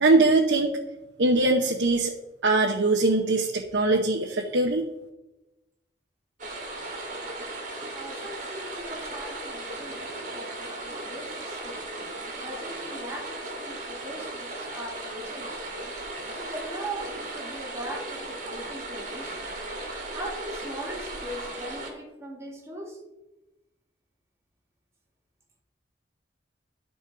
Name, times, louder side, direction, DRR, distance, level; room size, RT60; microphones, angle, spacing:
voice 1, 0.0-0.8 1.2-2.1 2.4-4.8, right 2 dB, 90° right, 0 dB, 0.8 m, -22 dB
sound 1, 6.4-21.9, right 2 dB, 45° right, 1.9 m, -36 dB
voice 2, 7.9-11.9 12.1-15.6 16.4-19.4 20.1-23.0, right 1 dB, 15° right, -1 dB, 1.9 m, -40 dB
12.5 x 4.2 x 4.7 m, 1.0 s
head